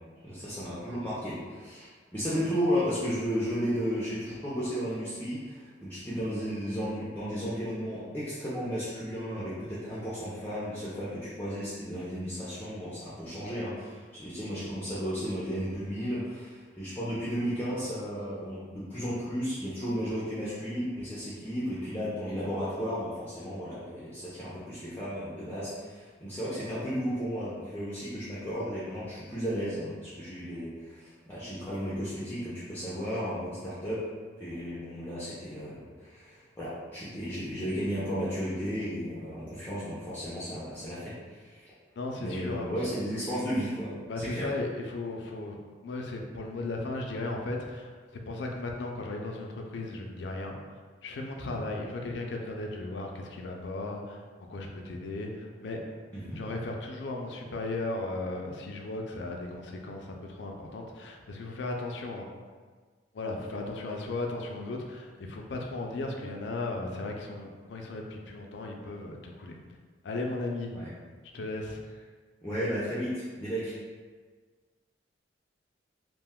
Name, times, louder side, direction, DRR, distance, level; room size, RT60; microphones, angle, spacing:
voice 1, 0.2-34.0 34.4-41.7 42.2-43.9 44.2-44.5 56.1-56.4 70.7-70.9 72.4-73.7, equal, 10° left, -10 dB, 0.5 m, -34 dB
voice 2, 42.0-42.7 44.1-45.6 45.8-50.6 51.0-54.2 54.5-55.8 56.4-62.3 63.1-69.6 70.0-70.7 71.3-71.8, left 2 dB, 70° left, 1 dB, 0.4 m, -36 dB
2.5 x 2.2 x 3.5 m, 1.5 s
head